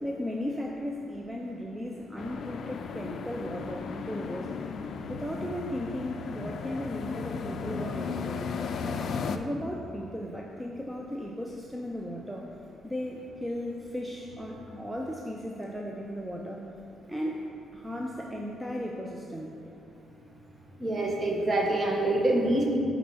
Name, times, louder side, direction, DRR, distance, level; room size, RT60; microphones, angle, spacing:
voice 1, 0.0-4.5 5.1-8.4 9.3-12.5 12.8-16.6 17.1-17.4 17.7-19.5, equal, 5° right, -1 dB, 0.5 m, -36 dB
sound 1, 2.2-9.4, left 5 dB, 60° left, 0.4 m, -35 dB
voice 2, 20.8-22.8, right 1 dB, 30° right, -1 dB, 1.0 m, -25 dB
6.0 x 4.0 x 6.1 m, 2.6 s
cardioid pair, 90°, 0 cm